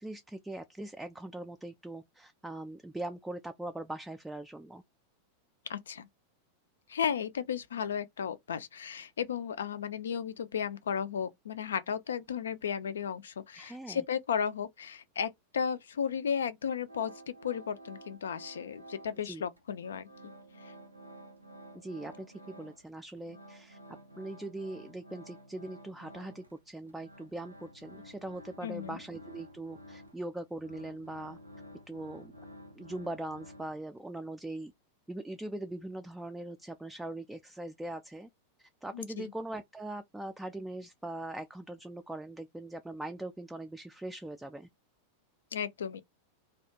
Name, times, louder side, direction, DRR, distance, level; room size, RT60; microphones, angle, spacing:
voice 1, 0.0-4.8 13.5-14.0 19.2-19.4 21.7-22.3 22.6-23.8 24.2-31.4 31.9-32.3 32.8-34.7 35.1-38.3 38.6-44.7, right 1 dB, 5° right, 0.3 m, -41 dB
voice 2, 5.7-6.1 6.9-20.1 28.6-29.0 38.9-39.2 45.5-46.0, left 7 dB, 65° left, 0.4 m, -34 dB
sound 1, 16.9-19.3 19.6-22.9 23.2-34.0, equal, 85° right, 0.6 m, -52 dB
2.4 x 2.2 x 2.8 m
figure-of-eight pair, 90°, 0 cm